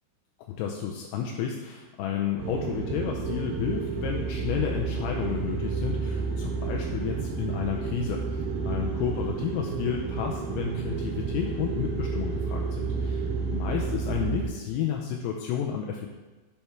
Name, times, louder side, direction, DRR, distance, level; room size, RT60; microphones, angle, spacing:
voice 1, 0.5-13.2 13.5-16.1, left 8 dB, 85° left, 0 dB, 2.4 m, -31 dB
sound 1, 2.4-14.5, right 5 dB, 70° right, 2.3 m, -31 dB
11.0 x 4.4 x 4.6 m, 1.2 s
omnidirectional pair, 5.1 m